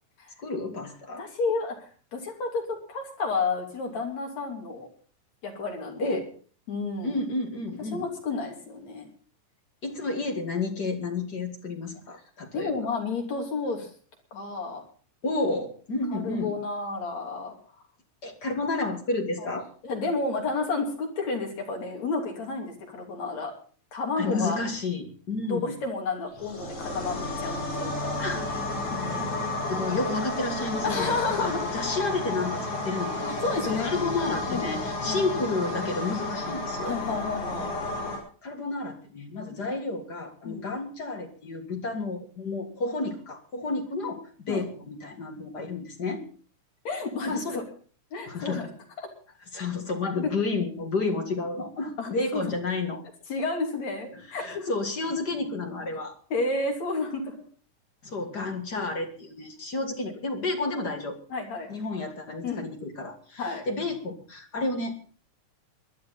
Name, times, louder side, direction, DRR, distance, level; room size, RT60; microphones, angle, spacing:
voice 1, 0.4-1.2 6.0-6.3 7.0-8.1 9.8-12.7 15.2-16.6 18.2-19.7 24.2-25.8 28.2-28.4 29.7-31.1 31.4-33.4 33.7-37.0 38.4-46.2 47.2-47.6 48.3-48.7 49.5-53.0 54.1-56.1 58.0-61.2 61.7-65.0, left 3 dB, 40° left, 4 dB, 2.0 m, -31 dB
voice 2, 1.2-4.9 5.4-6.2 6.7-7.2 7.9-9.1 12.5-13.9 14.3-14.8 16.1-17.6 19.4-19.5 19.8-23.5 23.9-24.6 25.5-28.2 28.9-29.4 30.8-31.6 33.3-34.0 34.5-34.7 35.1-35.3 36.8-37.7 40.4-40.7 44.5-44.6 46.8-47.6 48.1-48.7 49.0-49.1 50.2-50.3 52.0-52.4 53.3-54.7 56.3-57.4 58.7-58.9 61.3-61.7 62.4-62.7 63.4-63.6, left 3 dB, 65° left, 1 dB, 4.2 m, -31 dB
sound 1, 26.3-38.2, left 2 dB, 85° left, 7.0 m, -32 dB
21.0 x 11.0 x 4.1 m, 0.42 s
omnidirectional pair, 3.5 m